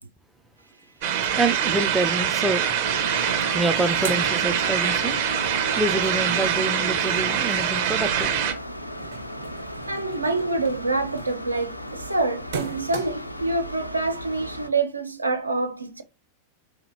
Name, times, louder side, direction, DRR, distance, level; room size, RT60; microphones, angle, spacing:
sound 1, 1.0-8.5, right 9 dB, 50° right, 0.8 m, -24 dB
voice 1, 1.4-2.6 3.5-5.2 5.7-8.3, right 2 dB, 5° right, 0.4 m, -26 dB
sound 2, 2.8-14.7, left 1 dB, 85° left, 0.4 m, -36 dB
sound 3, 3.6-5.2 5.5-13.4, right 6 dB, 65° right, 1.2 m, -40 dB
voice 2, 9.9-16.0, right 3 dB, 80° right, 0.5 m, -26 dB
4.0 x 2.8 x 2.6 m
figure-of-eight pair, 90°, 0 cm